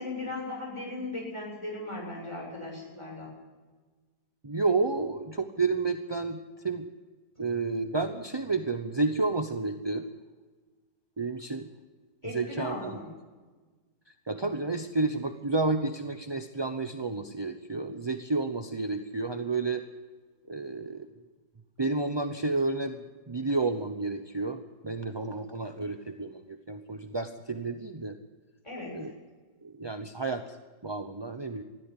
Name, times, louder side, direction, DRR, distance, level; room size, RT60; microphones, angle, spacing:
voice 1, 0.0-3.3 12.2-13.1 28.6-29.1, left 2 dB, 15° left, -2 dB, 7.5 m, -37 dB
voice 2, 4.4-6.9 7.4-10.1 11.2-11.7 12.2-13.0 14.2-19.8 20.5-21.1 21.8-28.2 28.9-29.1 29.6-30.6 30.8-31.6, right 3 dB, 25° right, 7 dB, 0.6 m, -31 dB
21.0 x 14.5 x 9.9 m, 1.4 s
omnidirectional pair, 1.8 m